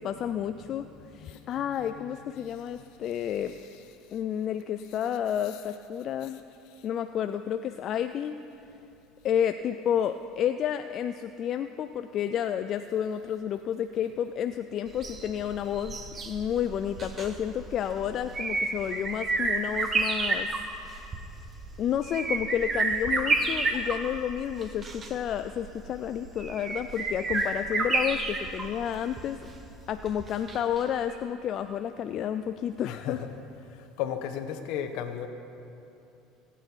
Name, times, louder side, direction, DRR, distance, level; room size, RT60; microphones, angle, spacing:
voice 1, 0.0-0.9 1.1-3.6 4.1-6.4 6.8-8.4 9.2-20.5 20.8-21.1 21.8-29.5 29.9-33.2, left 9 dB, 50° left, 9 dB, 0.4 m, -31 dB
voice 2, 0.7-1.5 2.0-2.6 3.0-3.1 3.6-3.9 4.9-5.0 5.6-5.8 32.8-33.3 34.0-35.3, left 9 dB, 70° left, 8 dB, 1.2 m, -36 dB
sound 1, 14.9-30.8 31.1-31.2, right 3 dB, 30° right, 1.4 m, -31 dB
25.5 x 9.0 x 4.6 m, 2.8 s
supercardioid pair, 100°, 0 cm